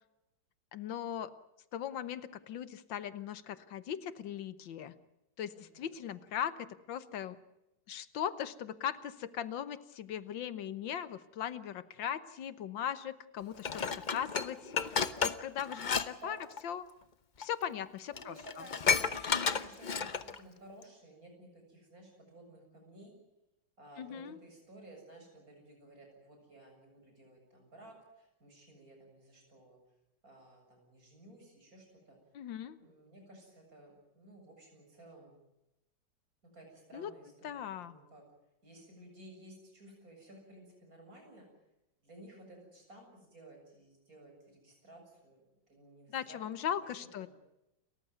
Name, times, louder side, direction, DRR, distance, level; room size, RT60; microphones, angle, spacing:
voice 1, 0.7-1.3 1.7-4.9 5.4-7.4 7.9-13.8 14.1-14.7 15.2-16.4 16.6-16.9 17.4-18.3 24.0-24.4 32.4-32.8 36.9-37.1 37.4-38.0 46.1-47.3, left 9 dB, 90° left, 14 dB, 1.8 m, -39 dB
voice 2, 5.6-6.1 15.8-16.4 18.1-23.1 23.8-29.8 30.2-32.2 32.8-35.4 36.5-38.2 38.6-41.5 42.0-46.4 46.9-47.3, right 1 dB, 50° right, 2 dB, 7.8 m, -55 dB
Dishes pots and pans, 13.6-16.1 16.4-16.6 17.4-17.5 17.9-18.0 18.2-20.4 20.8-20.9, left 6 dB, 40° left, 0.6 m, -32 dB
29.5 x 14.5 x 9.4 m, 0.94 s
omnidirectional pair, 2.0 m